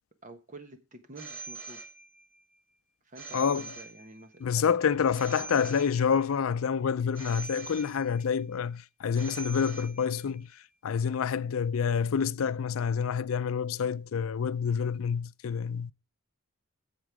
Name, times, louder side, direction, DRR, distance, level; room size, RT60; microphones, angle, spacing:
voice 1, 0.2-1.8 3.0-6.0, right 2 dB, 35° right, 1.2 m, -49 dB
Telephone, 1.2-2.4 3.1-4.4 5.1-6.4 7.1-8.4 9.1-10.4, right 4 dB, 70° right, 2.8 m, -44 dB
voice 2, 3.3-3.7 4.4-15.9, left 6 dB, 85° left, 0.4 m, -28 dB
8.8 x 7.4 x 4.7 m
head